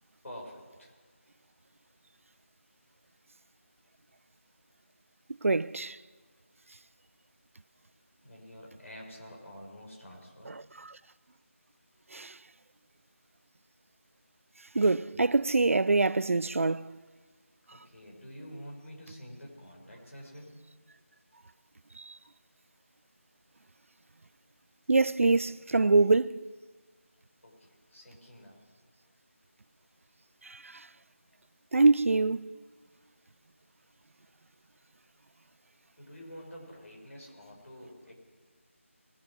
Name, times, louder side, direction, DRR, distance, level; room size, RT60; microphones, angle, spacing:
voice 1, 0.2-1.0 8.2-10.7 17.7-20.6 27.4-28.7 31.2-31.3 36.0-38.1, equal, 75° left, 5.6 m, -48 dB
voice 2, 5.4-6.0 12.1-12.4 14.7-16.9 22.0-22.2 24.9-26.4 30.4-30.9 31.7-32.5, right 3 dB, 75° right, 0.4 m, -25 dB
21.5 x 7.2 x 6.2 m
figure-of-eight pair, 170°, 7 cm